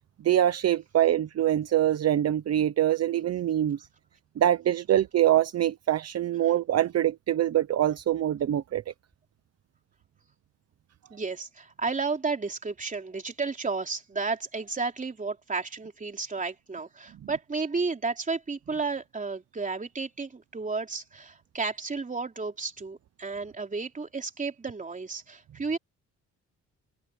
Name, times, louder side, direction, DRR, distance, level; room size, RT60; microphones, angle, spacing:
voice 1, 0.2-3.9 4.4-8.9, right 11 dB, 55° right, 1.0 m, -24 dB
voice 2, 11.1-25.8, right 4 dB, 25° right, 3.5 m, -32 dB
cardioid pair, 90°, 30 cm